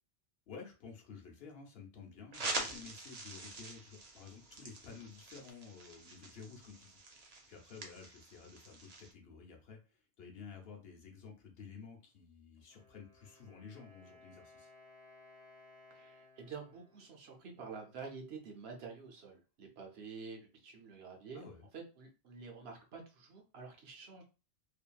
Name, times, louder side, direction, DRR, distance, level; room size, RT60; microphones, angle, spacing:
voice 1, 0.5-14.7 21.3-21.6, left 5 dB, 70° left, 1 dB, 1.0 m, -52 dB
sound 1, 2.3-9.1, right 3 dB, 45° right, 0.6 m, -45 dB
Wind instrument woodwind instrument, 12.6-18.3, left 2 dB, 35° left, 1.0 m, -62 dB
voice 2, 15.9-21.4 21.7-24.2, right 5 dB, 75° right, 2 dB, 1.0 m, -49 dB
2.8 x 2.5 x 2.2 m, 0.33 s
omnidirectional pair, 1.1 m